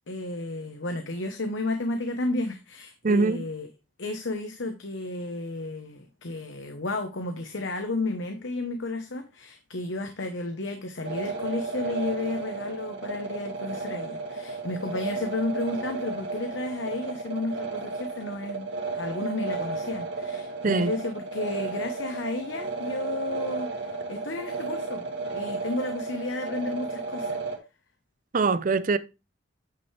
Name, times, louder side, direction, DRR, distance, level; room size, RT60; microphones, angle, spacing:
voice 1, 0.1-3.7 4.0-27.4, left 2 dB, 80° left, 1.0 m, -32 dB
voice 2, 3.0-3.4 20.6-20.9 28.3-29.0, right 3 dB, 45° right, 0.5 m, -23 dB
sound 1, 11.0-27.6, right 3 dB, 70° right, 2.3 m, -33 dB
9.0 x 5.6 x 3.3 m
head